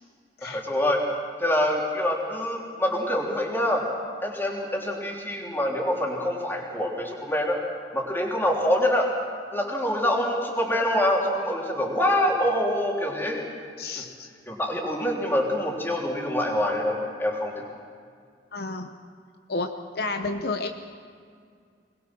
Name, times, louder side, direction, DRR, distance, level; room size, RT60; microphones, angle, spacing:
voice 1, 0.4-1.0 1.4-3.8 4.2-7.6 7.9-9.1 9.5-13.4 14.5-17.5, left 1 dB, 15° left, -2 dB, 3.5 m, -25 dB
voice 2, 13.8-14.3 18.5-18.9 19.5-20.7, left 3 dB, 60° left, 6 dB, 0.9 m, -31 dB
22.5 x 21.0 x 6.2 m, 2.2 s
head